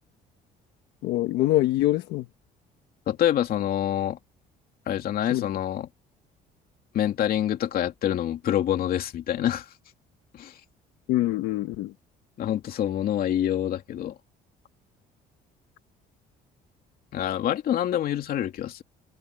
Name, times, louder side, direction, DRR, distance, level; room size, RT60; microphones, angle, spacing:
voice 1, 1.0-2.3 5.3-5.5 11.1-11.9, left 15 dB, 90° left, 1.2 m, -24 dB
voice 2, 3.1-4.2 4.9-5.9 6.9-9.6 10.3-10.5 12.4-14.1 17.1-18.8, left 11 dB, 60° left, 2.6 m, -26 dB
cardioid pair, 110°, 17 cm